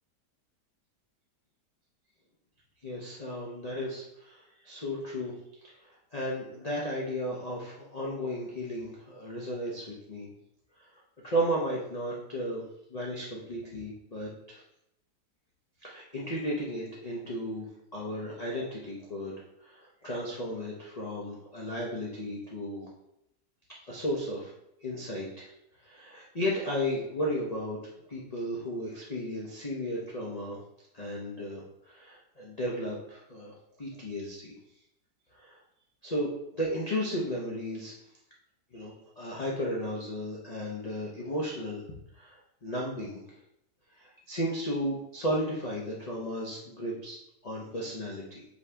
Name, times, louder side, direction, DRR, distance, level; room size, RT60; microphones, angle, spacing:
voice 1, 2.8-5.3 5.6-10.3 10.8-10.9 11.2-12.6 12.9-14.6 15.8-19.3 19.6-22.9 23.9-24.5 24.8-25.5 25.8-30.6 30.9-33.5 33.8-34.5 35.3-35.6 36.0-36.3 36.5-37.9 38.7-41.8 42.1-43.2 44.0-48.4, equal, 85° left, -4 dB, 0.3 m, -34 dB
5.0 x 2.7 x 3.3 m, 0.81 s
omnidirectional pair, 1.8 m